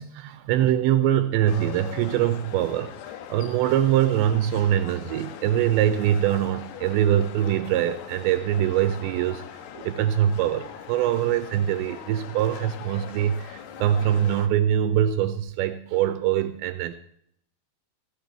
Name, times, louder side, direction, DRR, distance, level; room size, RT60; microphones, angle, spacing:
voice 1, 0.0-2.9 3.3-9.4 9.7-17.0, right 11 dB, 80° right, 9 dB, 2.8 m, -23 dB
sound 1, 1.5-14.5, left 9 dB, 75° left, 2.9 m, -41 dB
15.5 x 6.6 x 8.0 m, 0.69 s
omnidirectional pair, 5.4 m